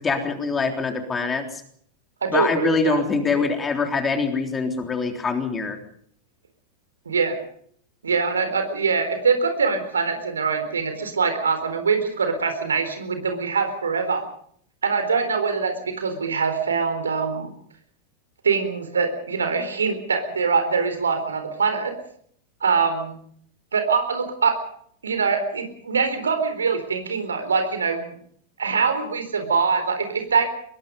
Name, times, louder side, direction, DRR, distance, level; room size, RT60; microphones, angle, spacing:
voice 1, 0.0-1.6 2.3-5.8, left 4 dB, 15° left, 5 dB, 3.5 m, -24 dB
voice 2, 2.2-3.0 7.1-7.4 8.0-14.3 14.8-17.5 18.4-21.9 22.6-23.2 23.7-24.6 25.0-28.1 28.6-30.4, right 5 dB, 70° right, 8 dB, 4.0 m, -23 dB
23.5 x 22.0 x 5.3 m, 0.62 s
figure-of-eight pair, 90°, 0 cm